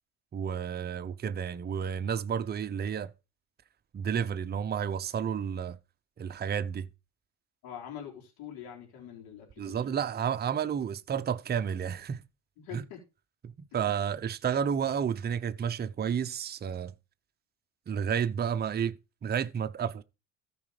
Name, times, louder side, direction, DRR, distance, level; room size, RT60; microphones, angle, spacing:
voice 1, 0.3-3.1 3.9-5.8 6.2-6.9 9.6-12.2 12.7-12.8 13.4-16.9 17.9-19.0 19.2-20.0, right 8 dB, 25° right, 0.7 m, -31 dB
voice 2, 7.6-9.9 12.6-13.0, left 9 dB, 75° left, 3.6 m, -44 dB
13.5 x 5.0 x 5.0 m
supercardioid pair, 95°, 38 cm